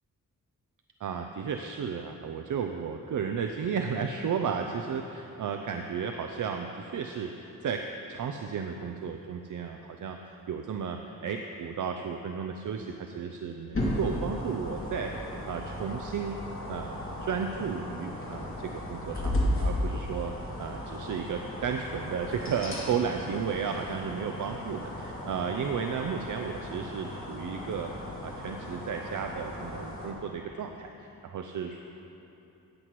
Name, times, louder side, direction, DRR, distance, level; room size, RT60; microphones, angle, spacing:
voice 1, 1.0-7.8 8.1-16.4 16.7-20.3 20.6-27.9 28.2-31.8, right 6 dB, 65° right, 4 dB, 0.6 m, -33 dB
sound 1, 13.7-30.1, left 1 dB, 40° left, 2.6 m, -35 dB
15.0 x 9.7 x 3.1 m, 2.9 s
cardioid pair, 80°, 34 cm